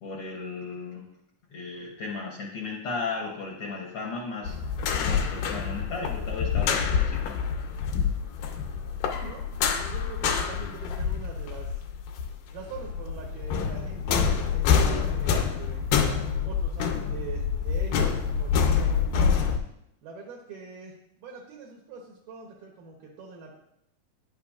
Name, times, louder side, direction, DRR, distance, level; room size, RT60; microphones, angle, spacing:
voice 1, 0.0-1.0 1.5-4.5 5.1-7.4, left 4 dB, 70° left, -3 dB, 1.3 m, -35 dB
sound 1, 4.5-12.3 12.6-19.6, left 6 dB, 90° left, 2.4 m, -26 dB
voice 2, 9.1-11.8 12.5-15.8 16.4-19.5 20.0-23.5, right 5 dB, 80° right, -1 dB, 2.5 m, -43 dB
10.0 x 5.6 x 2.4 m, 0.78 s
omnidirectional pair, 3.7 m